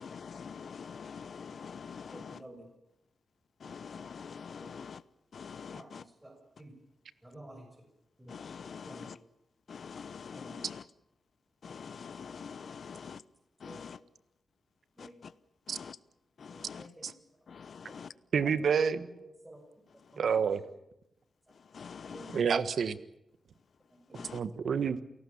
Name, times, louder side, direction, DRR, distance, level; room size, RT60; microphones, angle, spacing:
voice 1, 0.0-2.4 3.6-5.0 5.3-6.0 8.3-9.2 9.7-10.8 11.6-13.2 13.6-14.0 15.0-15.3 15.7-16.0 16.4-16.9 17.5-18.1 21.7-22.4 24.1-24.4, left 6 dB, 65° left, 18 dB, 0.9 m, -45 dB
voice 2, 2.1-2.7 4.0-4.1 4.6-4.7 5.7-6.7 7.2-7.7 8.2-8.4 8.8-9.1 10.3-10.6 13.6-14.0 15.0-15.2 16.5-16.9 17.9-18.0 18.6-18.7 19.0-19.6 20.1-20.3 20.6-20.7 22.1-22.3 24.1-24.3, right 1 dB, 15° right, 3 dB, 6.8 m, -51 dB
voice 3, 18.3-19.1 20.2-20.6 22.3-23.0 24.3-25.0, right 6 dB, 70° right, 13 dB, 1.5 m, -28 dB
28.5 x 18.0 x 7.3 m, 0.84 s
cardioid pair, 90°, 0 cm